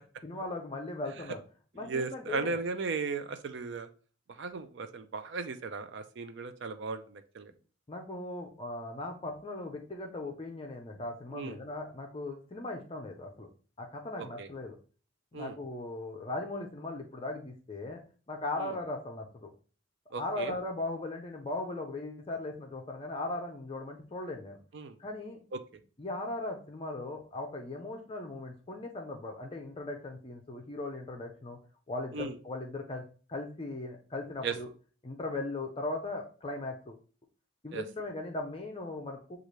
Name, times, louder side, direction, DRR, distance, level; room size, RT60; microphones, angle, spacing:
voice 1, 0.2-1.4 1.7-2.6 7.9-13.5 13.8-14.8 15.3-18.0 18.3-19.5 20.1-24.6 25.0-25.4 26.0-31.6 31.9-33.0 33.3-34.7 35.0-37.0 37.6-39.4, left 2 dB, 25° left, 2 dB, 0.5 m, -38 dB
voice 2, 1.8-3.9 4.4-7.5 11.3-11.6 14.2-14.5 15.3-15.6 18.6-18.7 20.1-20.5 24.7-25.0 25.5-25.6 32.1-32.4 34.4-34.5 37.7-37.8, right 4 dB, 55° right, 9 dB, 0.4 m, -36 dB
6.6 x 2.4 x 3.1 m, 0.39 s
head